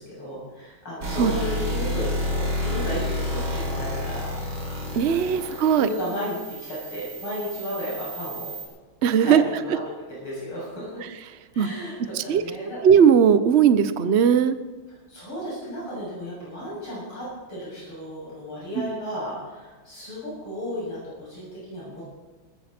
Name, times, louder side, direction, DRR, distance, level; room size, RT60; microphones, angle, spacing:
voice 1, 0.0-4.3 4.7-5.3 5.8-8.5 9.2-9.9 10.2-11.0 11.5-12.8 15.1-22.1, equal, 90° left, -7 dB, 8.3 m, -34 dB
sound 1, 1.0-8.6, left 1 dB, 70° right, 4.9 m, -30 dB
voice 2, 4.9-5.9 9.0-9.4 11.6-11.7 12.1-12.4 12.8-14.6 18.8-18.9, right 7 dB, 55° right, 12 dB, 0.7 m, -18 dB
20.0 x 14.5 x 4.4 m, 1.3 s
omnidirectional pair, 2.3 m